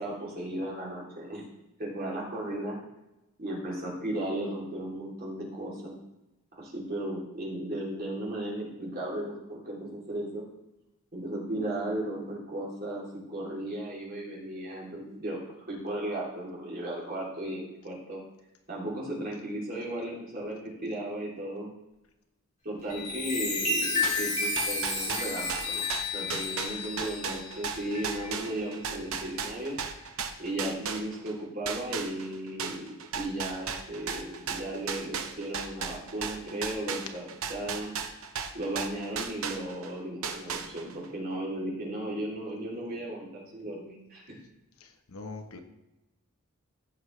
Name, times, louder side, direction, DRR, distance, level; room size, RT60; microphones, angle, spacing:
voice 1, 0.0-1.5 1.8-2.8 3.4-6.0 6.5-10.4 11.1-18.2 18.7-21.7 22.6-25.8 26.1-29.8 30.4-37.9 38.5-44.2, right 1 dB, 45° right, -4 dB, 3.1 m, -35 dB
Chime, 22.8-28.8 29.3-29.6, left 3 dB, 35° left, 3.1 m, -32 dB
sound 1, 24.0-31.3 31.7-39.9 40.2-41.0, right 6 dB, 65° right, 0.9 m, -35 dB
voice 2, 44.8-45.6, left 3 dB, 75° left, 6 dB, 1.0 m, -43 dB
15.0 x 6.5 x 3.3 m, 0.94 s
head